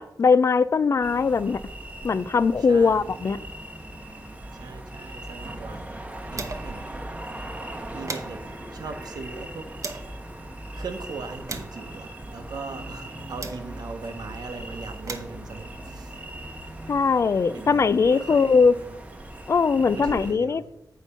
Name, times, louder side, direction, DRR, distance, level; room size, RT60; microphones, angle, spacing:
voice 1, 0.0-1.6 2.0-3.4 16.9-18.7 19.5-20.6, left 5 dB, 45° left, 17 dB, 0.3 m, -20 dB
sound 1, 1.0-20.3, right 1 dB, 20° right, 0.9 m, -39 dB
voice 2, 2.6-3.2 4.6-5.9 6.3-6.9 7.9-9.7 10.7-16.1 17.5-19.0 19.9-20.6, right 4 dB, 75° right, 6 dB, 1.0 m, -39 dB
sound 2, 5.1-6.9 7.2-7.3 7.6-10.2 10.8-14.0 14.7-16.9, right 3 dB, 50° right, 0.9 m, -41 dB
8.3 x 4.4 x 5.6 m, 0.82 s
wide cardioid pair, 110°, 7 cm